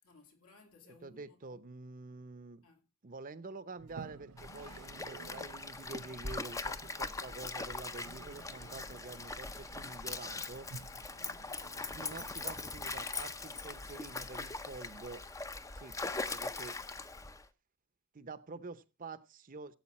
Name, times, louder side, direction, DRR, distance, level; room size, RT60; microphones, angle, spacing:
voice 1, 0.0-1.6 2.6-2.9 11.1-11.5, left 4 dB, 75° left, 2.4 m, -62 dB
voice 2, 0.9-2.6 3.0-10.7 11.9-15.2 15.7-16.0 16.3-16.8 18.1-19.8, right 3 dB, 40° right, 0.7 m, -47 dB
Toilet flush, 3.8-12.9, right 5 dB, 90° right, 0.7 m, -54 dB
Stream, 4.4-17.4, left 3 dB, 15° left, 0.5 m, -41 dB
16.0 x 8.0 x 4.2 m
head